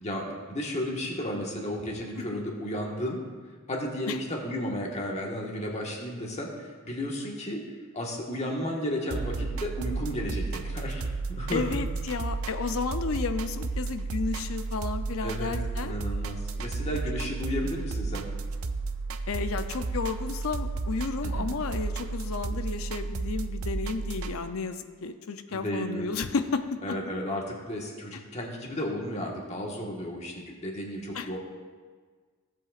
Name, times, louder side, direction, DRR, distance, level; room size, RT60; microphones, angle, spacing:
voice 1, 0.0-3.2 3.7-7.6 7.9-11.6 15.2-15.6 15.8-18.3 21.2-21.5 25.5-26.1 26.8-31.4, equal, 30° left, -1 dB, 1.4 m, -33 dB
sound 1, 9.1-24.3, right 3 dB, 75° right, 0.5 m, -32 dB
voice 2, 11.5-15.9 17.6-17.7 19.3-27.0 28.1-28.2 31.1-31.3, left 4 dB, 70° left, 9 dB, 0.5 m, -32 dB
16.5 x 7.8 x 2.4 m, 1.5 s
head